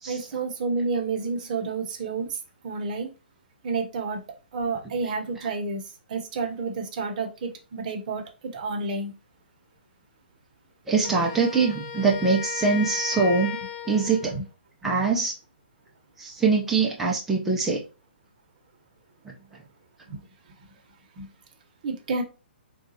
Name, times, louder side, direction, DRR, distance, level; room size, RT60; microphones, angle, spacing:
voice 1, 0.1-3.1 3.6-4.2 4.5-5.8 6.1-9.1 14.2-14.4 14.8-15.0 20.1-20.2 21.2-21.3 21.8-22.2, right 4 dB, 45° right, 4 dB, 0.8 m, -30 dB
voice 2, 10.9-13.5 13.9-14.3 14.8-15.3 16.2-17.8, right 4 dB, 5° right, -3 dB, 0.5 m, -23 dB
Wind instrument woodwind instrument, 11.0-14.4, left 8 dB, 40° left, 0.6 m, -35 dB
3.7 x 2.3 x 2.7 m, 0.31 s
hypercardioid pair, 140°, 6 cm